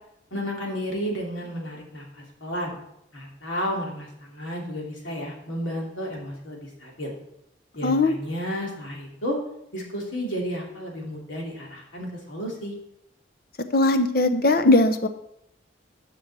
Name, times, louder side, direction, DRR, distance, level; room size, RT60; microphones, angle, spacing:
voice 1, 0.3-2.7 3.1-7.1 7.7-9.4 9.7-12.8, equal, 85° left, -1 dB, 2.9 m, -32 dB
voice 2, 7.8-8.1 13.7-15.1, left 2 dB, 50° left, 8 dB, 0.8 m, -19 dB
10.0 x 6.2 x 6.2 m, 0.78 s
head